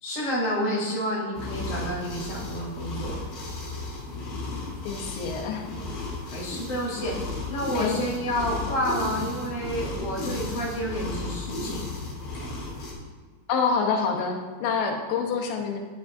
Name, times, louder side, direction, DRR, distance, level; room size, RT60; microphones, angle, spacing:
voice 1, 0.0-3.2 6.3-11.8, equal, 25° left, -6 dB, 2.2 m, -30 dB
sound 1, 1.3-12.9, left 2 dB, 55° left, 1.8 m, -34 dB
voice 2, 4.8-5.7 7.7-8.0 13.5-15.8, left 5 dB, 90° left, 2 dB, 3.2 m, -27 dB
10.5 x 7.7 x 2.6 m, 1.5 s
omnidirectional pair, 5.0 m